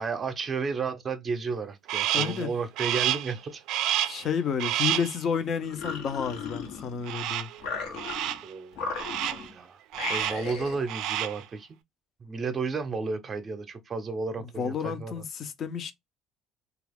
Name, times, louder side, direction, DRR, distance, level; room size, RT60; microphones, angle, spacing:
voice 1, 0.0-4.0 8.4-8.8 9.3-9.8 10.1-11.7 12.2-15.2, right 4 dB, 30° right, 0.6 m, -33 dB
Crow, 1.9-2.4 2.8-3.3 3.7-4.3 4.6-5.2 7.1-7.6 8.0-8.5 9.0-9.5 9.9-10.5 10.8-11.4, right 12 dB, 70° right, 0.3 m, -29 dB
voice 2, 2.1-2.5 4.0-7.5 14.6-15.9, left 7 dB, 45° left, 0.5 m, -31 dB
sound 1, 5.6-7.1 7.6-8.4 8.7-9.5 9.9-10.8, left 5 dB, 90° left, 1.0 m, -36 dB
2.8 x 2.3 x 3.4 m
cardioid pair, 125°, 0 cm